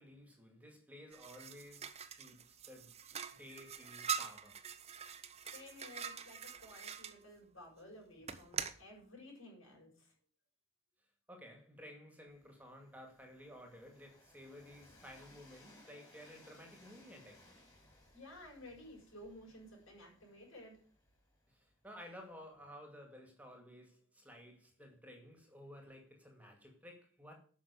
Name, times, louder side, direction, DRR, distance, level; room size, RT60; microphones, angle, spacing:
voice 1, 0.0-2.9 3.4-4.6 11.3-17.5 21.5-27.3, equal, 5° right, 2.2 m, -55 dB
sound 1, 1.1-7.1 8.2-8.8, right 7 dB, 30° right, 0.8 m, -44 dB
voice 2, 5.5-10.1 18.1-20.8, left 1 dB, 70° left, 6.5 m, -54 dB
Train, 12.3-22.1, left 1 dB, 15° left, 4.0 m, -64 dB
9.5 x 6.2 x 8.3 m
head